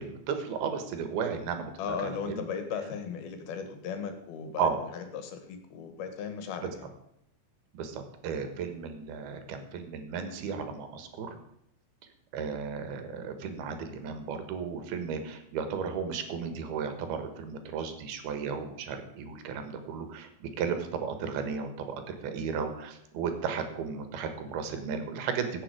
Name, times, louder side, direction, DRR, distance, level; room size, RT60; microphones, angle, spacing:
voice 1, 0.0-2.4 4.6-4.8 6.6-6.7 7.7-11.4 12.3-25.6, right 6 dB, 90° right, 8 dB, 3.4 m, -34 dB
voice 2, 1.8-6.9, left 6 dB, 80° left, 7 dB, 3.5 m, -37 dB
16.0 x 7.4 x 5.0 m, 0.79 s
omnidirectional pair, 4.4 m